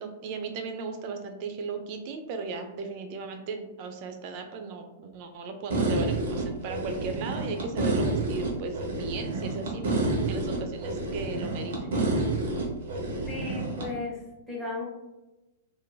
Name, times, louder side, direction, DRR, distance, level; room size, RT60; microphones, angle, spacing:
voice 1, 0.0-10.0 10.3-12.0, right 4 dB, 45° right, 6 dB, 0.4 m, -36 dB
sound 1, 5.7-13.9, right 2 dB, 65° right, 0.8 m, -29 dB
voice 2, 13.3-14.2 14.5-14.8, left 2 dB, 10° right, -4 dB, 1.0 m, -34 dB
2.9 x 2.5 x 2.2 m, 1.0 s
hypercardioid pair, 105°, 0 cm